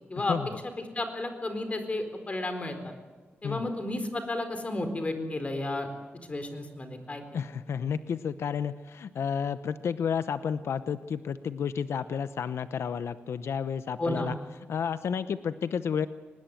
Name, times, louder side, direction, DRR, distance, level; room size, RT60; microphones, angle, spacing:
voice 1, 0.2-0.5 3.4-3.7 7.3-14.3 14.7-16.1, left 7 dB, 80° left, 12 dB, 0.8 m, -31 dB
voice 2, 0.9-2.9 3.4-5.9 6.3-7.2 14.0-14.3, left 2 dB, 30° left, 7 dB, 4.3 m, -32 dB
24.5 x 20.0 x 9.3 m, 1.3 s
wide cardioid pair, 105°, 4 cm